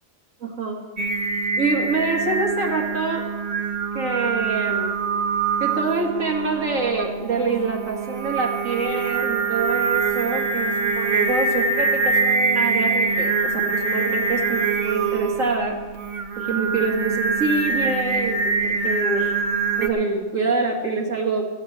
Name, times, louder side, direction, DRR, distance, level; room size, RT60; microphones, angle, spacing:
voice 1, 0.4-0.8 1.6-3.3 3.9-5.0 5.6-15.8 16.4-19.3 19.8-21.4, right 3 dB, 75° right, -1 dB, 2.2 m, -25 dB
Singing, 1.0-19.9, right 4 dB, 40° right, 1.0 m, -24 dB
14.5 x 7.9 x 7.4 m, 1.3 s
omnidirectional pair, 1.4 m